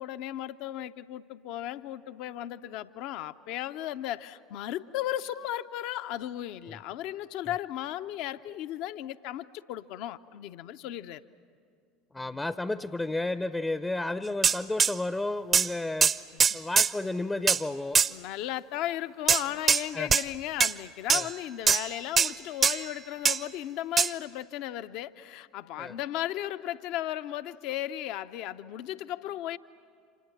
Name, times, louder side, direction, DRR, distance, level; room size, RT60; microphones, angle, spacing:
voice 1, 0.0-11.2 16.3-16.6 18.1-29.6, left 13 dB, 55° left, 12 dB, 0.7 m, -35 dB
voice 2, 12.1-16.1 16.5-18.0 19.5-19.6 19.9-20.1 21.1-21.3 25.8-26.0, left 2 dB, 15° left, 13 dB, 0.6 m, -32 dB
sound 1, 14.4-14.9 15.5-15.7 16.0-16.9 17.5-17.6 17.9-18.1 19.3-19.8 20.1-20.2 20.6-20.7 21.1-21.3 21.7-21.9 22.2-22.3 22.6-22.9 23.3-23.4 24.0-24.1, right 6 dB, 30° right, 0.6 m, -22 dB
29.5 x 26.5 x 7.2 m, 2.3 s
figure-of-eight pair, 70°, 0 cm